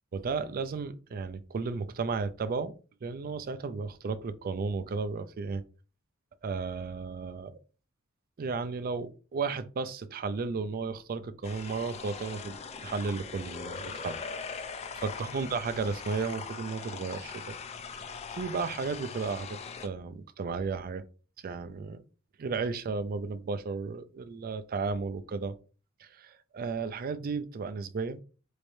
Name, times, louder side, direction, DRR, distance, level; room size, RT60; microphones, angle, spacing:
voice 1, 0.1-2.7 3.0-5.6 6.4-7.6 8.4-14.2 15.0-17.6 18.3-21.0 21.4-22.0 22.4-25.5 26.0-28.2, right 4 dB, 45° right, 0.4 m, -34 dB
sound 1, 11.4-19.9, left 5 dB, 30° left, 0.4 m, -41 dB
4.2 x 3.2 x 2.6 m
head